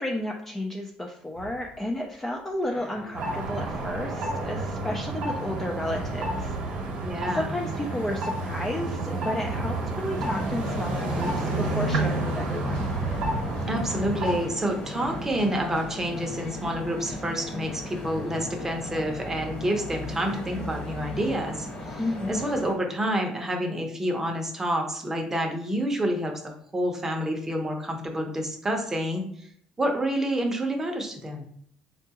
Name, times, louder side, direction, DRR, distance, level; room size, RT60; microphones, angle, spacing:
voice 1, 0.0-6.6 7.3-12.9 22.0-22.3, left 1 dB, 10° left, 1 dB, 0.4 m, -32 dB
sound 1, 1.3-2.0 2.6-5.6 5.9-14.0 14.8-15.2, right 1 dB, 80° left, 1.0 m, -40 dB
sound 2, 3.1-14.5, right 2 dB, 60° right, 0.9 m, -30 dB
voice 2, 7.0-7.6 13.7-22.0 22.3-29.2 29.8-31.4, equal, 15° right, 2 dB, 0.7 m, -28 dB
sound 3, 10.1-22.7, left 1 dB, 50° left, 1.1 m, -36 dB
3.6 x 2.3 x 2.8 m, 0.64 s
cardioid pair, 105°, 3 cm